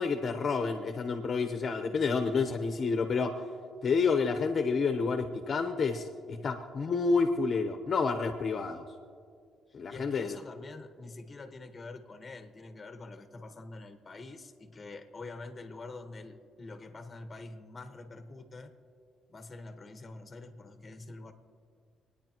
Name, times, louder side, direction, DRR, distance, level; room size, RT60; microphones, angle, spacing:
voice 1, 0.0-3.5 3.8-8.9 9.7-10.4, left 4 dB, 50° left, 6 dB, 1.0 m, -29 dB
voice 2, 9.9-18.7 19.3-21.3, left 3 dB, 30° left, 7 dB, 1.4 m, -46 dB
27.0 x 10.0 x 3.0 m, 2.2 s
cardioid pair, 90°, 0 cm